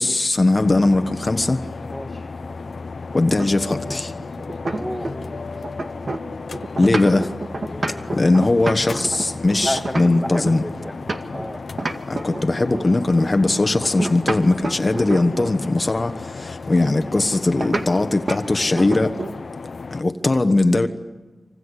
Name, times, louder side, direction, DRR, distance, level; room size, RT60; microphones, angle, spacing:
voice 1, 0.0-1.6 3.1-4.1 6.8-7.3 8.1-10.6 12.1-19.2 19.9-20.9, left 2 dB, 40° left, 1.2 m, -19 dB
sound 1, 0.6-20.0, left 4 dB, 75° left, 0.8 m, -34 dB
voice 2, 1.9-2.2 4.7-6.0 7.7-8.2 9.6-11.0 11.3-11.6, equal, ahead, 1.9 m, -32 dB
sound 2, 3.4-5.4 5.6-11.5 11.8-12.9 13.8-15.6 17.6-17.9 18.3-18.5 18.8-19.4, right 2 dB, 60° right, 2.0 m, -28 dB
26.5 x 26.0 x 8.2 m
wide cardioid pair, 70°, 0 cm